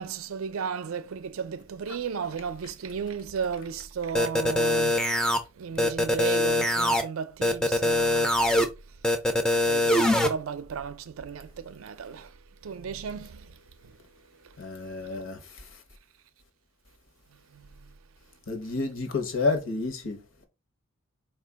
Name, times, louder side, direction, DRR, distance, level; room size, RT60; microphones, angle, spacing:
voice 1, 0.0-5.0 5.6-8.7 9.7-12.4 12.6-13.6 13.8-14.0 17.5-17.7, right 6 dB, 80° right, 0.4 m, -34 dB
sound 1, 4.1-5.4 5.8-7.0 7.4-8.6 9.0-10.3, left 1 dB, 5° left, 0.4 m, -23 dB
voice 2, 14.6-15.8 18.5-20.2, left 3 dB, 70° left, 0.9 m, -30 dB
4.4 x 2.4 x 3.5 m
head